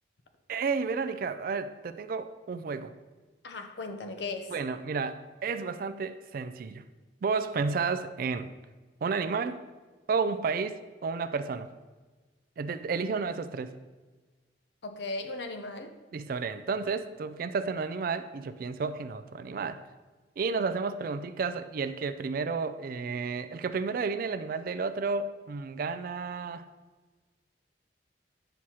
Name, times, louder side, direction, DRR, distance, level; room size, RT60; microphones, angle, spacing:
voice 1, 0.5-2.9 4.5-6.8 7.2-8.5 9.0-9.6 10.1-11.7 12.6-13.7 16.1-19.8 20.4-26.7, right 4 dB, 50° right, 12 dB, 0.3 m, -32 dB
voice 2, 3.4-4.5 14.8-15.9, left 3 dB, 65° left, 6 dB, 0.7 m, -37 dB
9.1 x 6.2 x 2.8 m, 1.3 s
head